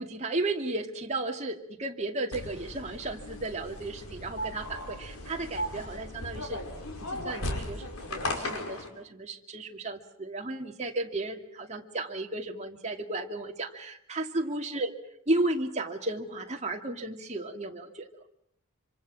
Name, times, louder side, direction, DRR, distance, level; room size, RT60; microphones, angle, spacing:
voice 1, 0.0-6.6 7.1-14.9 15.3-18.1, right 2 dB, 30° right, 2 dB, 2.4 m, -34 dB
sound 1, 2.3-8.9, left 1 dB, 85° left, 5.2 m, -36 dB
26.0 x 26.0 x 7.4 m, 0.71 s
head